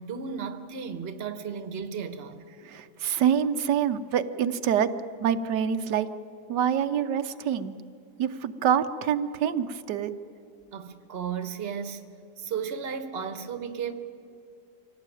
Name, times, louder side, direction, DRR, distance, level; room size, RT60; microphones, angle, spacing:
voice 1, 0.0-2.4 10.7-12.1 12.4-13.9, right 6 dB, 40° right, 1.3 m, -34 dB
voice 2, 2.6-4.9 5.2-6.1 6.5-7.8 8.2-10.1, right 8 dB, 90° right, 1.4 m, -26 dB
25.0 x 17.5 x 9.1 m
omnidirectional pair, 1.8 m